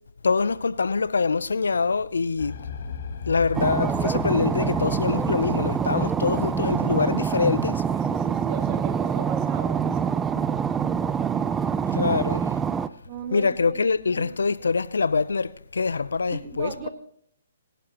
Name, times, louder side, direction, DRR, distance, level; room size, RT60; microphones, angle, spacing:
voice 1, 0.2-2.6 3.3-7.7 11.9-12.4 13.3-16.9, left 4 dB, 80° left, 0.6 m, -24 dB
sound 1, 2.4-8.1, left 6 dB, 55° left, 1.8 m, -39 dB
sound 2, 3.5-12.9, right 7 dB, 15° right, 0.4 m, -25 dB
Guitar, 4.5-6.2 6.5-8.2 8.6-8.9 9.2-9.5 9.9-10.1 10.3-10.5 10.8-11.0, left 5 dB, 15° left, 1.7 m, -41 dB
voice 2, 5.9-6.4 8.0-10.0 13.0-14.3 16.3-16.9, right 8 dB, 30° right, 2.2 m, -37 dB
27.5 x 11.5 x 3.0 m
hypercardioid pair, 135°, 0 cm